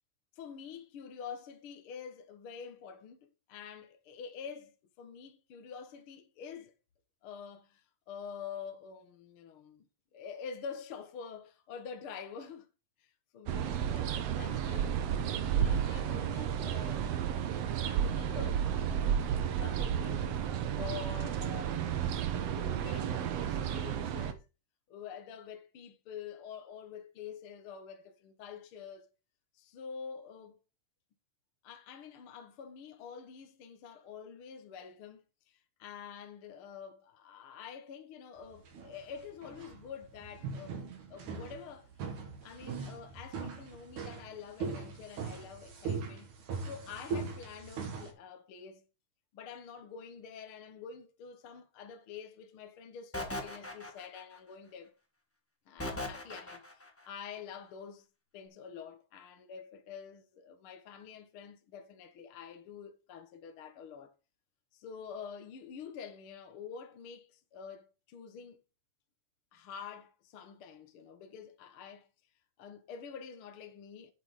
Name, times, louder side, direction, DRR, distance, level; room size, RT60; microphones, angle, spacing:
voice 1, 0.3-6.7 7.2-9.8 10.1-12.7 13.0-17.1 17.7-19.2 19.6-20.5 20.7-22.1 22.3-24.5 24.9-29.1 29.5-30.6 31.6-35.2 35.5-40.8 41.1-41.9 42.4-46.3 46.6-48.8 49.3-54.9 55.7-58.0 58.3-64.1 64.7-68.6 69.5-72.1 72.6-74.1, left 6 dB, 55° left, 1.7 m, -47 dB
sound 1, 13.5-24.3, right 9 dB, 65° right, 1.9 m, -32 dB
sound 2, 38.4-48.1, right 5 dB, 80° right, 3.5 m, -40 dB
sound 3, 53.1-54.4 55.8-56.9, left 1 dB, 10° left, 0.7 m, -39 dB
8.8 x 8.3 x 4.1 m
omnidirectional pair, 3.4 m